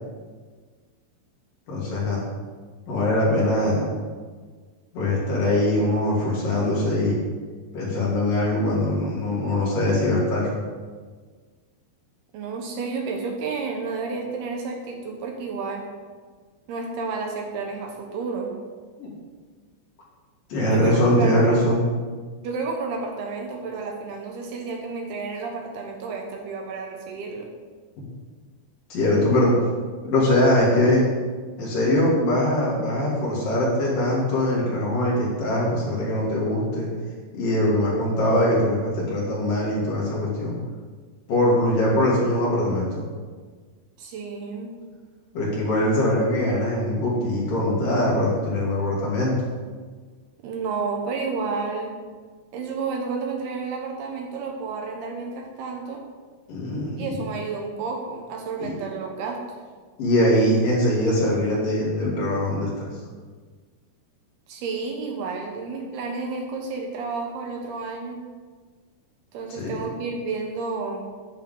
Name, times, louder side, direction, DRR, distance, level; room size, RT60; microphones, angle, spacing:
voice 1, 1.7-2.2 2.9-3.9 4.9-7.2 7.7-10.5 19.0-19.1 20.5-21.9 28.0-28.1 28.9-29.5 30.0-31.0 31.6-36.9 37.3-40.6 41.3-43.0 45.3-49.3 56.5-57.2 58.6-58.7 60.0-62.9 69.5-69.7, left 1 dB, 55° left, -6 dB, 4.2 m, -22 dB
voice 2, 12.3-15.9 16.7-18.6 20.6-21.7 22.4-27.5 44.0-44.7 50.4-51.9 52.5-56.0 57.0-59.6 64.5-68.2 69.3-71.1, right 4 dB, 75° right, 2 dB, 2.9 m, -31 dB
10.5 x 10.5 x 3.9 m, 1.5 s
omnidirectional pair, 5.0 m